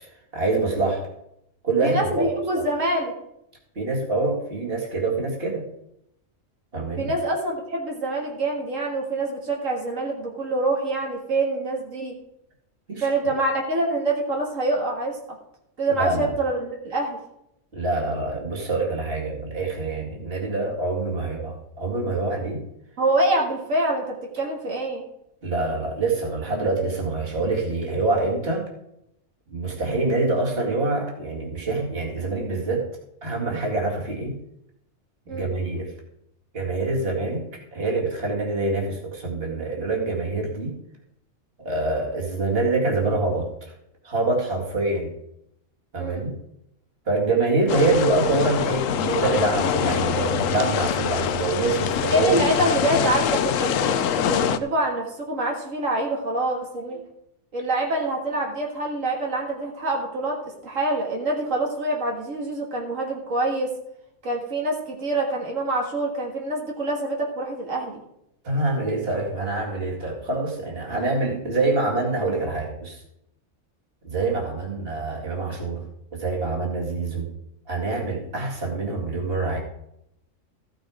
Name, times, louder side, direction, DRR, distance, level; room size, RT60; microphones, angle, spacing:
voice 1, 0.3-1.1 1.6-2.6 3.8-5.6 6.7-7.1 12.9-13.1 16.0-16.3 17.7-22.6 25.4-28.6 29.5-32.8 33.2-34.4 35.3-35.9 36.5-37.4 37.7-40.7 41.6-43.7 44.0-45.1 45.9-46.4 47.1-52.3 68.4-73.0 74.0-75.8 76.1-77.3 77.7-79.6, right 3 dB, 50° right, -1 dB, 2.4 m, -25 dB
voice 2, 1.8-3.1 7.0-12.1 13.0-15.2 15.8-17.2 23.0-25.0 35.3-35.5 46.0-46.3 52.1-57.0 57.5-63.7 64.2-68.0, right 2 dB, 80° right, 0 dB, 2.2 m, -25 dB
sound 1, 47.7-54.6, left 9 dB, 85° left, 1.0 m, -24 dB
14.5 x 6.3 x 4.9 m, 0.78 s
omnidirectional pair, 1.3 m